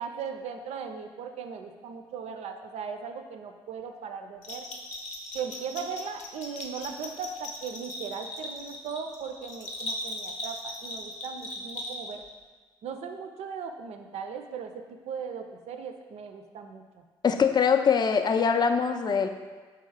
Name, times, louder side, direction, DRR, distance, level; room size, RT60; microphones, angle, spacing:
voice 1, 0.0-4.6 5.3-12.2 12.8-17.0, right 6 dB, 55° right, 6 dB, 0.4 m, -38 dB
Bell, 4.4-12.3, left 1 dB, 65° left, 0.7 m, -38 dB
voice 2, 17.2-19.3, left 6 dB, 30° left, 7 dB, 0.4 m, -23 dB
3.5 x 2.9 x 4.7 m, 1.4 s
figure-of-eight pair, 45°, 13 cm